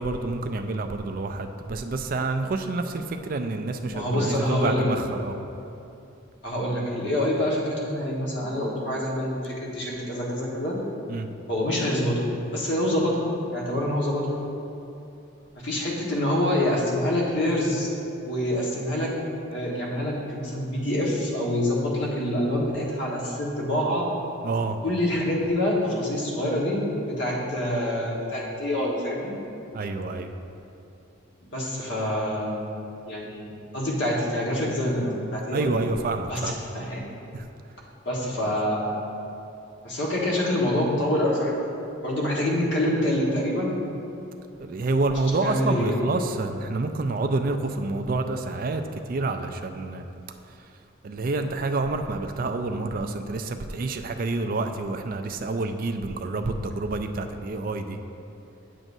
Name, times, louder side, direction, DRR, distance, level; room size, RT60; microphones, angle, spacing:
voice 1, 0.0-5.4 11.1-11.3 24.4-24.8 29.7-30.3 35.5-36.5 37.3-37.5 38.4-38.5 44.6-48.8 49.1-50.0 50.5-50.6 51.0-58.0, right 3 dB, 45° right, 6 dB, 0.4 m, -28 dB
voice 2, 3.9-4.8 6.4-10.8 11.5-14.4 15.6-17.9 18.2-19.1 19.5-24.1 24.8-29.3 31.4-32.7 33.1-33.5 33.7-35.8 36.3-36.4 36.7-37.0 38.0-39.0 39.8-41.5 42.0-43.7 45.2-46.0, left 1 dB, 60° left, -4 dB, 1.4 m, -26 dB
8.8 x 7.5 x 2.7 m, 2.7 s
head